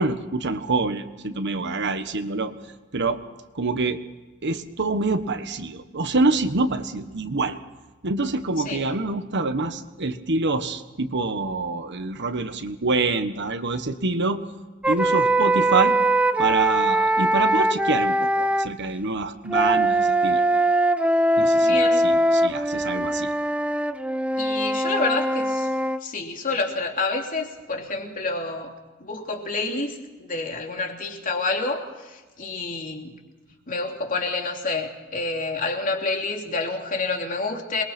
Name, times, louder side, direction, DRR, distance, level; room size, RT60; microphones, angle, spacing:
voice 1, 0.0-2.5 2.9-3.2 3.5-4.0 4.4-7.6 8.0-14.4 14.9-16.0 16.4-20.4 21.4-23.3, right 3 dB, 55° right, 9 dB, 1.4 m, -26 dB
sound 1, 14.8-18.7 19.5-26.0, right 1 dB, 5° right, 0.7 m, -21 dB
voice 2, 21.6-22.1 24.4-25.7 26.0-28.7 29.0-33.2 33.7-37.8, left 3 dB, 40° left, 2 dB, 3.1 m, -28 dB
27.5 x 22.0 x 4.4 m, 1.2 s
head